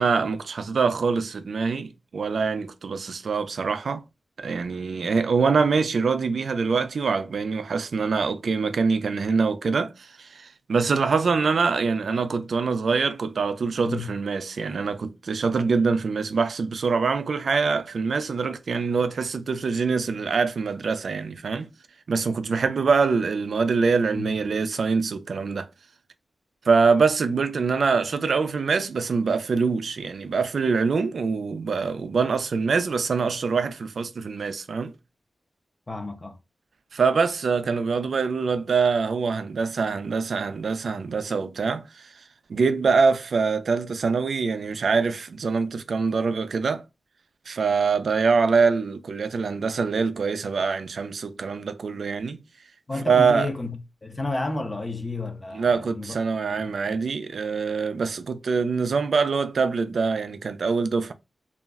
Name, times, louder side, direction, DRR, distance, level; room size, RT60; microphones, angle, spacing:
voice 1, 0.0-4.0 4.4-21.7 22.1-25.7 26.7-34.9 36.9-42.1 42.5-46.8 47.5-52.4 53.1-53.5 55.5-61.1, right 5 dB, 75° right, 0.3 m, -24 dB
voice 2, 24.1-24.5 35.9-36.4 52.9-56.2 56.5-57.0, left 2 dB, 25° left, 0.5 m, -32 dB
2.4 x 2.1 x 3.4 m
wide cardioid pair, 135°, 0 cm